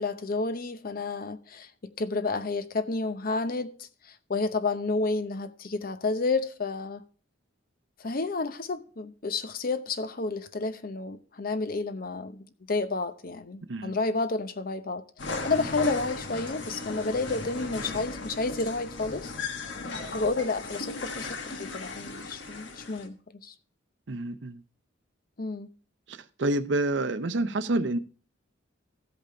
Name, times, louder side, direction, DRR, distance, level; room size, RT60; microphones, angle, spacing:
voice 1, 0.0-7.0 8.0-15.0 15.4-19.3 20.1-23.5 25.4-25.7, left 3 dB, 50° left, 0.7 m, -31 dB
sound 1, 15.2-23.1, left 3 dB, 65° left, 1.3 m, -36 dB
voice 2, 24.1-24.6 26.1-28.0, right 2 dB, 70° right, 0.7 m, -28 dB
15.0 x 5.2 x 4.6 m
head